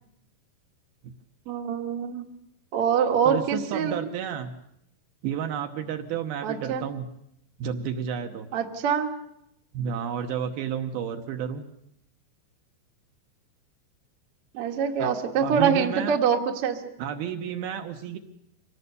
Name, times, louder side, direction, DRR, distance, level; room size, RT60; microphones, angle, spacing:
voice 1, 1.5-2.2 2.7-4.0 6.4-6.8 8.5-9.1 14.5-16.8, right 7 dB, 55° right, 3 dB, 1.6 m, -25 dB
voice 2, 3.3-4.5 5.2-7.1 7.6-8.5 9.7-11.6 15.0-15.1 15.4-16.2 17.0-18.2, right 8 dB, 70° right, 6 dB, 2.5 m, -31 dB
24.5 x 18.0 x 6.8 m, 0.77 s
omnidirectional pair, 5.0 m